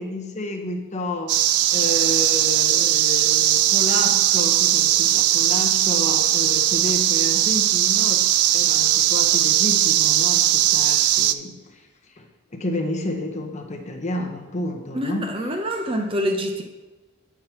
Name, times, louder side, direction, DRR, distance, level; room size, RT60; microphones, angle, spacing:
voice 1, 0.0-1.4 1.7-8.3 8.5-11.8 12.2-12.3 12.5-15.3, left 1 dB, 30° left, 3 dB, 0.9 m, -30 dB
sound 1, 1.3-11.3, right 13 dB, 90° right, 0.4 m, -19 dB
voice 2, 14.9-16.6, equal, 25° right, 4 dB, 0.6 m, -26 dB
8.6 x 4.7 x 5.8 m, 1.2 s
head